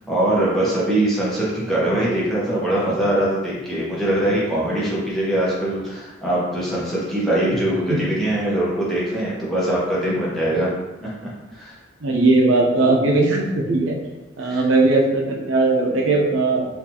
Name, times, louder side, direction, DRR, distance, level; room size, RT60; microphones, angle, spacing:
voice 1, 0.1-10.7 11.0-11.8 14.5-14.6, right 1 dB, ahead, -7 dB, 0.8 m, -22 dB
voice 2, 12.0-13.9 14.4-16.7, right 2 dB, 85° right, 0 dB, 0.7 m, -18 dB
4.3 x 2.5 x 2.8 m, 1.1 s
head